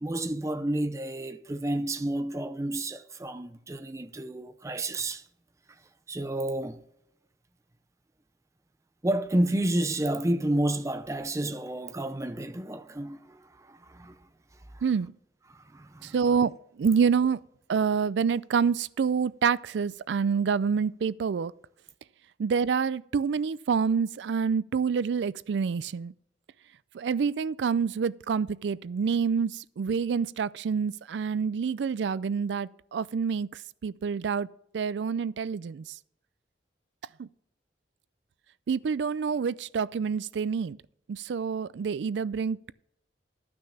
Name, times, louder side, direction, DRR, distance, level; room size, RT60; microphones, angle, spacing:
voice 1, 0.0-5.3 6.1-6.8 9.0-14.3 14.7-14.8 15.5-16.2, right 1 dB, 15° right, 0.5 m, -30 dB
voice 2, 14.8-15.1 16.0-16.5 16.8-17.4 17.7-21.5 22.4-26.1 26.9-33.5 33.8-34.5 34.7-35.8 37.2-37.3 38.7-40.8 41.1-42.7, right 6 dB, 75° right, 0.4 m, -27 dB
12.0 x 6.1 x 5.7 m
head